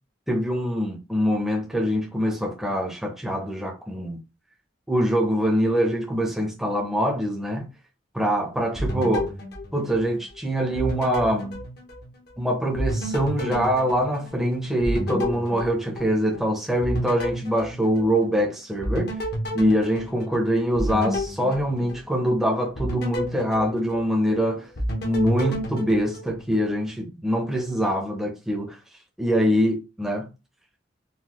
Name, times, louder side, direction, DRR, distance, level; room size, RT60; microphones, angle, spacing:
voice 1, 0.3-4.2 4.9-7.7 8.1-9.3 9.7-11.6 12.4-19.1 19.5-24.7 25.0-28.8 29.2-30.3, equal, ahead, 0.7 m, -24 dB
sound 1, 8.8-10.4 10.8-12.4 12.8-16.4 16.8-18.4 18.8-22.3 22.8-24.4 24.8-26.7, equal, 55° left, 0.9 m, -31 dB
4.0 x 2.3 x 3.0 m
head